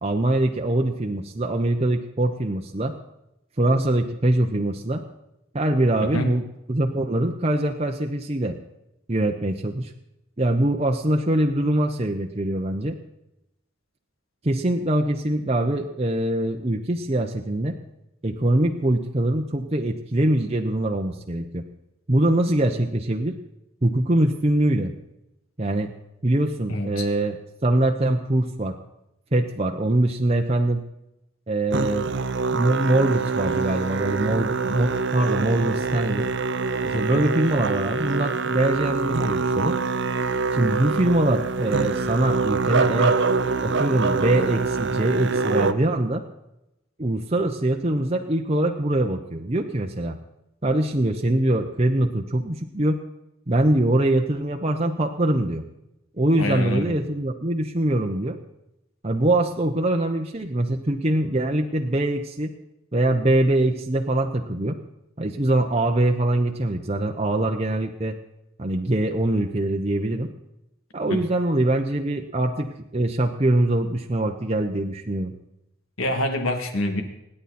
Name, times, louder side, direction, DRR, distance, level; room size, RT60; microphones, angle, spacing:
voice 1, 0.0-2.9 3.6-5.0 5.5-6.4 6.7-8.5 9.1-9.9 10.4-13.0 14.4-17.7 18.2-21.6 22.1-23.3 23.8-24.9 25.6-25.9 26.2-28.7 29.3-30.8 31.5-32.1 32.5-36.3 36.8-39.8 40.5-43.2 43.6-46.2 47.0-50.2 50.6-53.0 53.5-55.6 56.2-58.4 59.0-62.5 62.9-64.8 65.2-68.1 68.6-70.3 70.9-75.3, right 1 dB, 30° right, 2 dB, 0.9 m, -23 dB
voice 2, 26.7-27.1 37.1-37.2 56.4-56.9 71.1-71.2 76.0-77.0, left 1 dB, 85° left, 5 dB, 2.7 m, -26 dB
Musical instrument, 31.7-45.7, right 4 dB, 60° right, 0.8 m, -25 dB
26.5 x 10.0 x 4.3 m, 0.89 s
head